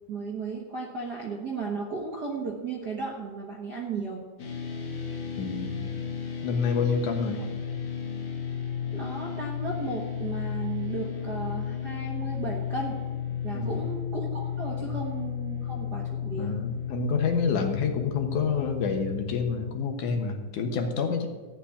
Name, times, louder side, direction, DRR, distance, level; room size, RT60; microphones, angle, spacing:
voice 1, 0.1-4.2 8.9-13.0 13.4-16.6, right 4 dB, 45° right, -2 dB, 1.3 m, -35 dB
sound 1, 4.4-19.7, left 8 dB, 45° left, 1.5 m, -33 dB
voice 2, 5.4-5.9 6.4-7.5 13.5-13.9 14.8-15.0 16.4-21.3, left 5 dB, 70° left, 4 dB, 2.5 m, -28 dB
15.0 x 6.0 x 9.9 m, 1.4 s
omnidirectional pair, 3.9 m